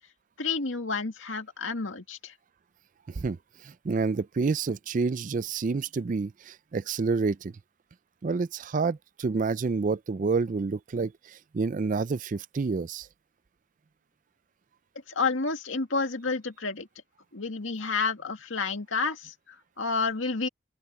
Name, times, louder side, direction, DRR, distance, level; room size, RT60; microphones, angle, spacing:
voice 1, 0.4-2.3 15.1-16.9 17.3-20.5, left 4 dB, 85° left, 2.2 m, -30 dB
voice 2, 3.6-7.5 8.2-11.1 11.5-13.1, right 4 dB, 40° right, 0.4 m, -28 dB
open air
head